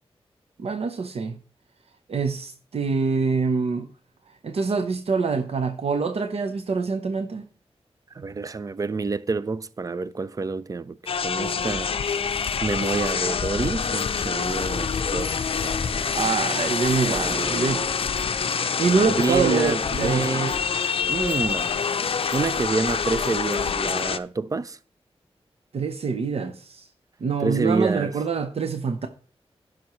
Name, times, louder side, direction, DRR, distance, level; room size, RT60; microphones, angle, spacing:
voice 1, 0.6-1.4 2.1-3.9 4.4-7.5 16.1-17.8 18.8-20.4 25.7-26.9 27.2-29.1, right 5 dB, 70° right, 0.8 m, -25 dB
voice 2, 8.1-11.9 12.3-12.4 12.6-16.1 17.0-17.9 19.2-20.7 21.1-21.7 22.3-24.8 27.4-28.2, right 4 dB, 35° right, 0.4 m, -28 dB
sound 1, 11.1-24.2, left 6 dB, 60° left, 0.5 m, -26 dB
15.5 x 6.0 x 3.1 m
wide cardioid pair, 135°, 11 cm